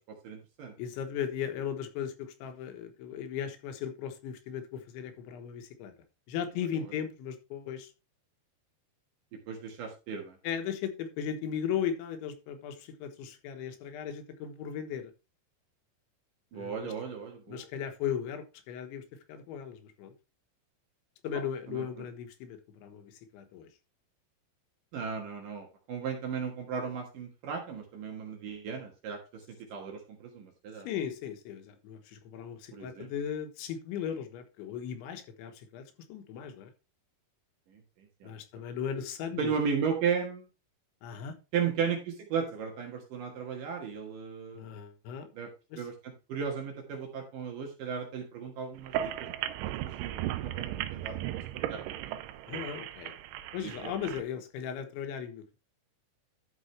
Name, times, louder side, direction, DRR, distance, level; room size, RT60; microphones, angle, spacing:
voice 1, 0.1-0.7 9.5-10.4 16.5-17.6 21.3-21.4 21.7-21.8 24.9-29.4 29.7-30.9 32.7-33.1 37.7-38.3 39.4-40.5 41.5-44.7 45.3-45.5 45.8-49.3 49.6-49.7 50.0-51.4 51.7-52.2 53.6-53.9, right 6 dB, 60° right, 2 dB, 2.5 m, -35 dB
voice 2, 0.8-5.9 6.3-7.9 10.4-15.1 16.5-16.9 17.5-20.1 21.2-23.7 30.8-36.7 38.2-39.5 41.0-41.4 44.5-45.3 45.7-45.8 52.5-53.1 53.5-55.6, left 8 dB, 85° left, 6 dB, 3.6 m, -37 dB
sound 1, 48.8-54.2, right 13 dB, 90° right, 3.1 m, -36 dB
12.5 x 6.2 x 3.2 m, 0.29 s
omnidirectional pair, 5.2 m